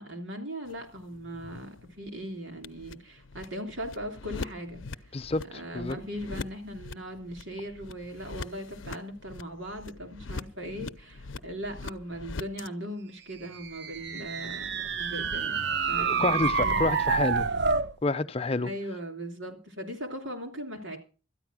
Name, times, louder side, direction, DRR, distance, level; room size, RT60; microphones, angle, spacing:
voice 1, 0.0-5.1 5.5-16.8 18.6-21.0, equal, 75° right, 3.2 m, -39 dB
sound 1, 0.6-12.7, left 3 dB, 75° left, 0.6 m, -43 dB
voice 2, 5.1-6.0 15.9-17.5 18.0-18.7, left 3 dB, 30° left, 0.6 m, -29 dB
sound 2, 13.5-17.9, right 5 dB, 60° right, 0.6 m, -28 dB
13.0 x 9.9 x 6.2 m
head